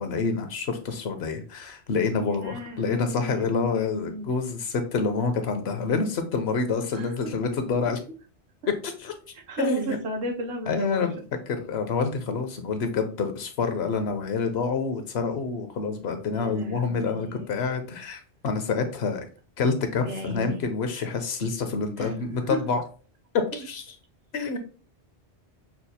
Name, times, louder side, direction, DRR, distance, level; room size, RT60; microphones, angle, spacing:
voice 1, 0.0-8.0 8.7-9.1 9.6-10.0 10.7-11.2 11.5-19.2 19.6-22.8 23.3-23.8 24.3-24.6, left 4 dB, 70° left, 7 dB, 0.9 m, -27 dB
voice 2, 2.2-4.3 6.9-7.1 9.5-11.1 16.3-17.6 20.0-20.6 22.0-22.2 22.5-22.6, right 1 dB, 65° right, 3 dB, 0.9 m, -34 dB
5.7 x 2.4 x 2.7 m, 0.38 s
omnidirectional pair, 1.2 m